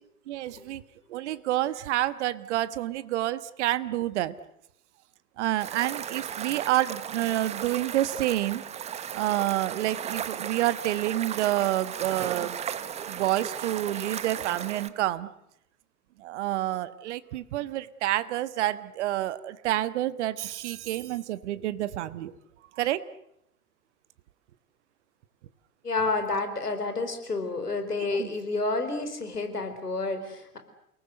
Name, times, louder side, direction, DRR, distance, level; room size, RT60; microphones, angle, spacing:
voice 1, 0.3-0.8 1.1-4.3 5.4-8.6 9.1-12.6 13.1-15.3 16.2-22.3 22.7-23.0 28.1-28.3, right 14 dB, 50° right, 15 dB, 1.3 m, -28 dB
sound 1, 5.6-14.9, right 9 dB, 15° right, 0.9 m, -36 dB
voice 2, 25.8-30.6, left 3 dB, 80° left, 7 dB, 4.7 m, -29 dB
29.0 x 19.5 x 8.0 m, 0.79 s
figure-of-eight pair, 105°, 46 cm